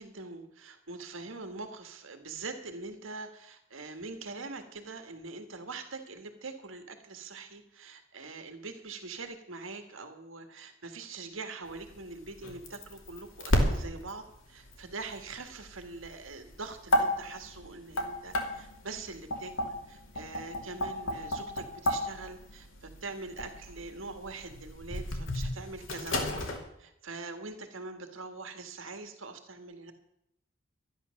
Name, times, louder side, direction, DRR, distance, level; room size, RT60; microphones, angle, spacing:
voice 1, 0.0-26.5 26.8-29.9, right 3 dB, 90° right, 6 dB, 1.7 m, -43 dB
sound 1, 11.7-26.6, left 1 dB, 85° left, 2.8 m, -33 dB
13.0 x 10.5 x 6.5 m, 0.82 s
head